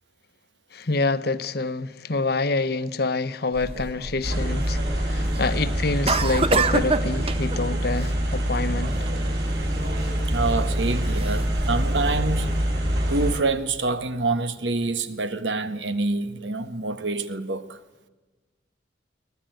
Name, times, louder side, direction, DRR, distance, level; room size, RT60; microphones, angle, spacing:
voice 1, 0.7-9.0, left 3 dB, 60° left, 1.1 m, -27 dB
sound 1, 3.5-12.0, right 3 dB, 30° right, 1.0 m, -29 dB
sound 2, 4.2-13.3, equal, 60° right, 7.7 m, -25 dB
voice 2, 10.3-12.6 13.1-17.8, right 3 dB, 80° right, 1.6 m, -26 dB
23.5 x 19.0 x 9.2 m
head